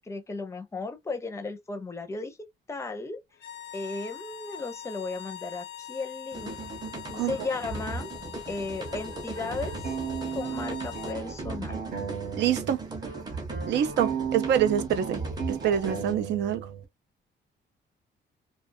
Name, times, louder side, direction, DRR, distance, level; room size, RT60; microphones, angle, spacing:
voice 1, 0.0-2.4 2.7-3.2 3.7-6.6 7.1-8.1 8.5-9.9 10.3-11.8, left 3 dB, 15° left, 0.5 m, -35 dB
sound 1, 3.3-11.2, left 11 dB, 85° left, 0.5 m, -43 dB
sound 2, 6.3-16.1, right 2 dB, 20° right, 0.7 m, -38 dB
sound 3, 8.9-12.8 13.0-16.8, right 7 dB, 55° right, 0.9 m, -35 dB
voice 2, 12.4-12.8 13.7-15.2 15.5-16.7, right 9 dB, 80° right, 0.5 m, -26 dB
2.5 x 2.3 x 2.5 m
cardioid pair, 165°, 18 cm